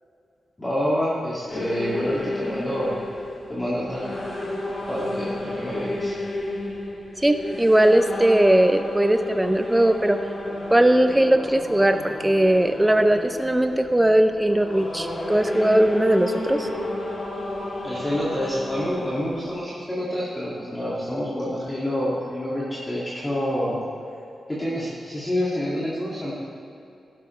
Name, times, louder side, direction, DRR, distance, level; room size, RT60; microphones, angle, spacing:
voice 1, 0.6-2.9 3.5-4.1 4.9-6.2 17.8-23.8 24.6-26.3, equal, 15° left, -8 dB, 2.1 m, -27 dB
sound 1, 1.5-19.6, left 1 dB, 40° left, 2.9 m, -32 dB
voice 2, 7.2-10.2 10.7-16.7, right 1 dB, 10° right, 7 dB, 0.4 m, -19 dB
17.5 x 11.5 x 3.2 m, 2.7 s
wide cardioid pair, 160°, 0 cm